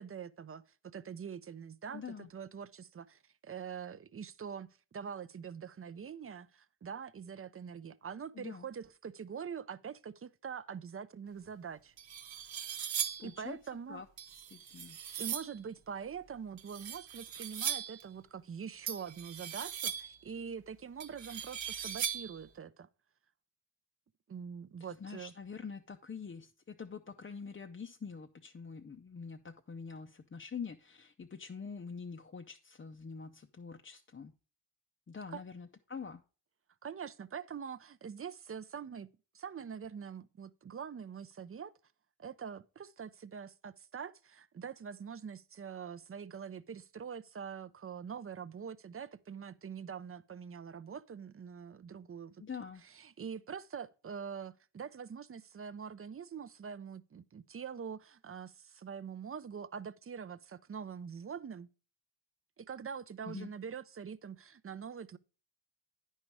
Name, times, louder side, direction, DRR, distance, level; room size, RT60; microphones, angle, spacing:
voice 1, 0.0-2.0 2.3-11.9 13.2-14.0 15.2-22.9 24.3-25.3 35.3-35.4 36.8-39.1 39.3-41.7 42.2-52.4 52.8-61.7 62.6-65.2, right 7 dB, 35° right, 0.5 m, -44 dB
voice 2, 1.9-2.3 8.3-8.7 13.2-15.0 24.8-34.3 35.1-36.2 52.4-52.8 63.2-63.5, left 5 dB, 30° left, 0.5 m, -45 dB
sound 1, 11.5-11.6 12.0-13.4 14.2-15.6 16.6-18.0 18.9-20.2 21.0-22.4, right 8 dB, 85° right, 1.0 m, -39 dB
9.9 x 5.5 x 4.6 m
wide cardioid pair, 90°, 44 cm